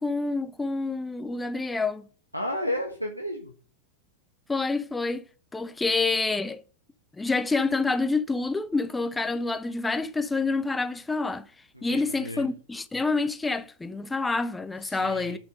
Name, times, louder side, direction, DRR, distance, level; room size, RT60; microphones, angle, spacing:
voice 1, 0.0-2.1 4.5-5.3 5.5-6.6 7.2-11.5 11.8-15.4, left 3 dB, 10° left, 0.7 m, -27 dB
voice 2, 2.3-3.5 11.7-12.5 14.9-15.4, left 1 dB, 90° right, 1.2 m, -32 dB
9.1 x 4.5 x 6.6 m
figure-of-eight pair, 90°, 0 cm